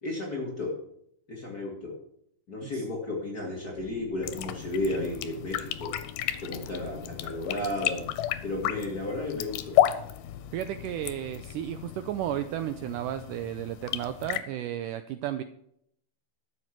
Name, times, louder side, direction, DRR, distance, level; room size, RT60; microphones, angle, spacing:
voice 1, 0.0-0.8 1.3-2.0 2.5-5.9 6.4-8.1 8.4-9.8, left 2 dB, 40° left, -1 dB, 1.4 m, -33 dB
sound 1, 3.8-12.0, left 8 dB, 70° left, 1.7 m, -47 dB
sound 2, 4.2-14.4, left 12 dB, 90° left, 2.6 m, -32 dB
voice 2, 10.5-15.4, right 11 dB, 90° right, 10 dB, 1.8 m, -33 dB
13.0 x 7.5 x 6.0 m, 0.72 s
omnidirectional pair, 4.3 m